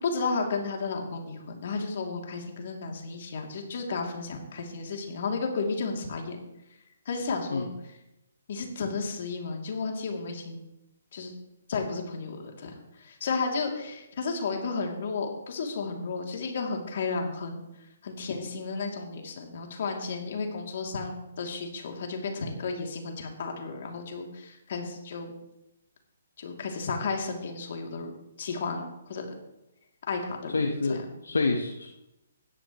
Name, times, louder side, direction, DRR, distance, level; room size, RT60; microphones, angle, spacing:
voice 1, 0.0-6.4 7.0-7.7 8.5-10.6 11.1-11.3 11.7-17.6 18.0-25.3 26.4-28.1 28.4-29.3 30.1-30.6 30.8-31.0, left 4 dB, 55° left, 1 dB, 2.9 m, -33 dB
voice 2, 30.5-31.9, left 3 dB, 80° left, 3 dB, 1.4 m, -28 dB
16.0 x 11.5 x 3.2 m, 0.90 s
figure-of-eight pair, 140°, 0 cm